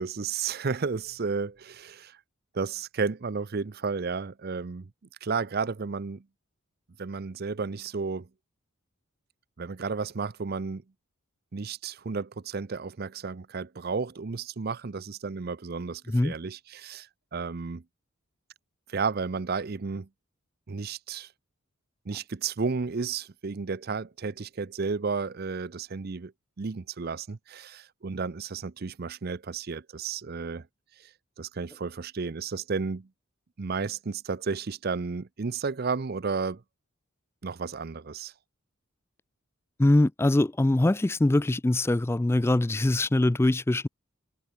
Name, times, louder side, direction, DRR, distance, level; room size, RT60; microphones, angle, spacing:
voice 1, 0.0-2.2 2.5-4.9 5.2-6.2 7.0-8.3 9.6-10.8 11.5-17.8 18.9-20.1 20.7-21.3 22.1-26.3 26.6-30.7 31.0-31.1 31.4-33.1 33.6-36.6 37.4-38.3, right 4 dB, 45° right, 0.5 m, -32 dB
voice 2, 39.8-43.9, left 1 dB, 10° left, 0.3 m, -23 dB
head